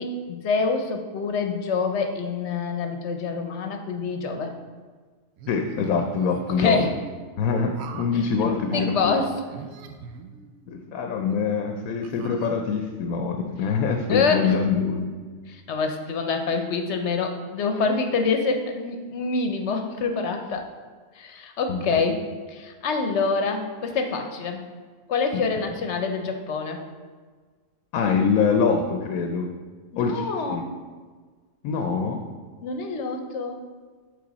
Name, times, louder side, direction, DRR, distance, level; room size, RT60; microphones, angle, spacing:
voice 1, 0.0-4.5 6.5-6.9 8.4-9.3 14.1-14.5 15.5-20.7 21.2-22.2 22.5-24.6 25.1-26.8 29.9-30.6 32.6-33.6, left 4 dB, 60° left, 5 dB, 0.9 m, -26 dB
sound 1, 5.4-6.8 7.7-8.2 8.7-8.9 9.5-10.7 11.2-11.3 12.0-12.9, right 6 dB, 85° right, 1.0 m, -42 dB
voice 2, 5.5-6.9 7.4-9.2 10.7-15.1 21.7-21.8 27.9-29.5 30.0-30.6 31.6-32.2, left 5 dB, 90° left, 4 dB, 1.0 m, -24 dB
7.6 x 3.9 x 4.0 m, 1.5 s
omnidirectional pair, 1.4 m